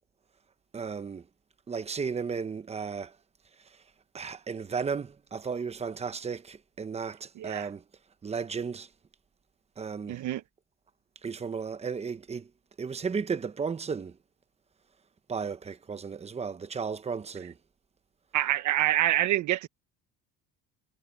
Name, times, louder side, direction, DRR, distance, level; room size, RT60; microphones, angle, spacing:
voice 1, 0.7-1.2 1.7-3.1 4.1-7.8 8.2-8.9 9.8-10.2 11.2-12.5 12.8-14.1 15.3-17.5, right 5 dB, 20° right, 0.9 m, -34 dB
voice 2, 7.4-7.7 10.1-10.4 18.3-19.7, right 14 dB, 60° right, 1.3 m, -26 dB
cardioid pair, 145°, 33 cm